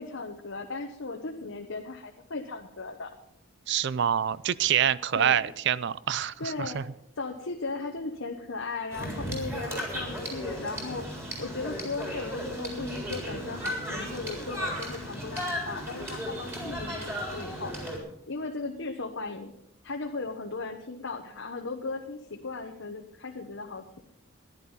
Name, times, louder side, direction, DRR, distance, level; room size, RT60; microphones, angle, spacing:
voice 1, 0.0-3.1 5.1-5.5 6.4-6.8 7.2-17.7 18.3-19.5 19.8-24.0, left 3 dB, 65° left, 2 dB, 1.1 m, -37 dB
voice 2, 3.7-6.8, right 9 dB, 60° right, 19 dB, 0.4 m, -26 dB
sound 1, 8.9-18.0, equal, 10° right, 3.8 m, -35 dB
14.5 x 11.0 x 5.6 m, 0.76 s
head